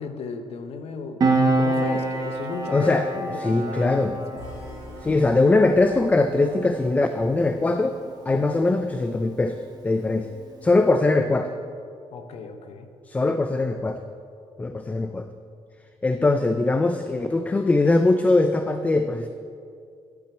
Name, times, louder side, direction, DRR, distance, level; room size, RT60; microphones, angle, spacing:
voice 1, 0.0-4.5 12.1-12.9, left 5 dB, 70° left, 7 dB, 0.9 m, -35 dB
Piano, 1.2-8.2 8.5-8.7, right 2 dB, 40° right, 1.1 m, -27 dB
voice 2, 2.7-3.1 3.4-4.1 5.0-8.0 8.3-9.6 9.8-10.3 10.6-11.5 13.1-14.0 14.6-15.3 16.0-19.3, left 2 dB, 15° left, 8 dB, 0.3 m, -21 dB
sound 1, 4.4-8.5, left 1 dB, 30° left, 3.0 m, -45 dB
10.5 x 5.8 x 8.2 m, 2.4 s
wide cardioid pair, 175°, 11 cm